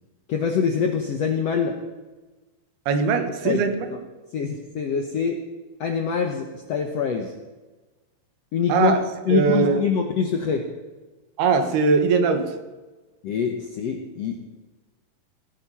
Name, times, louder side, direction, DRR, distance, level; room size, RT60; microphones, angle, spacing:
voice 1, 0.3-1.8 3.4-3.6 4.3-5.4 5.8-7.3 8.5-9.0 9.2-10.6 13.2-14.4, left 6 dB, 70° left, 4 dB, 1.5 m, -24 dB
voice 2, 2.9-3.9 8.7-9.8 11.4-12.5, right 5 dB, 80° right, 7 dB, 3.4 m, -21 dB
17.5 x 13.0 x 5.6 m, 1.2 s
omnidirectional pair, 4.5 m